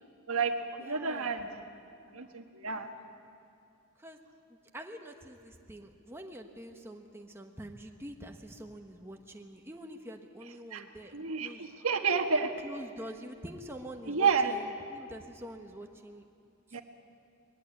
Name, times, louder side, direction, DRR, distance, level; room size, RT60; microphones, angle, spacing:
voice 1, 0.3-1.5 2.1-2.9 10.7-10.8 11.1-12.5 14.1-14.6 16.7-16.8, right 5 dB, 90° right, 5 dB, 1.4 m, -30 dB
voice 2, 0.8-1.4 4.0-4.2 4.5-11.7 12.4-16.2 16.7-16.8, equal, 10° right, 3 dB, 1.1 m, -46 dB
21.0 x 15.5 x 9.8 m, 2.5 s
head